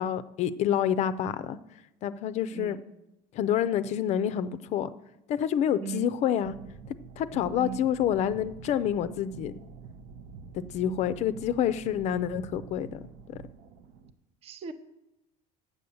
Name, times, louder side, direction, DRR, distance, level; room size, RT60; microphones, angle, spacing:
voice 1, 0.0-1.6 2.0-2.8 3.3-4.9 5.3-6.5 7.2-9.5 10.7-13.4, left 9 dB, 45° left, 14 dB, 0.4 m, -28 dB
voice 2, 2.5-2.8 5.8-6.1 7.5-7.8 14.4-14.7, right 7 dB, 40° right, 9 dB, 0.6 m, -38 dB
sound 1, 6.4-14.1, right 5 dB, 80° right, 0.7 m, -47 dB
8.2 x 6.6 x 7.0 m, 0.92 s
cardioid pair, 150°, 17 cm